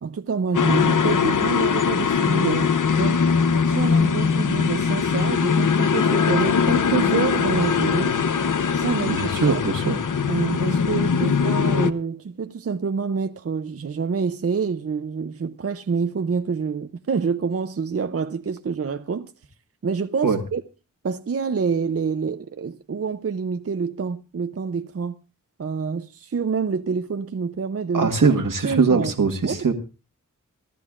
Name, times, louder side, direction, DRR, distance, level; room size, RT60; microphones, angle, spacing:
voice 1, 0.0-3.3 3.7-8.2 8.7-9.6 10.3-19.3 19.8-20.6 21.0-25.1 25.6-28.1 28.6-29.1 29.4-29.7, right 5 dB, 45° right, 0.6 m, -27 dB
sound 1, 0.5-11.9, left 6 dB, 70° left, 0.7 m, -21 dB
voice 2, 9.1-10.0 20.2-20.4 27.9-29.7, right 4 dB, 80° right, 1.6 m, -21 dB
28.0 x 12.0 x 2.5 m
wide cardioid pair, 95°, 32 cm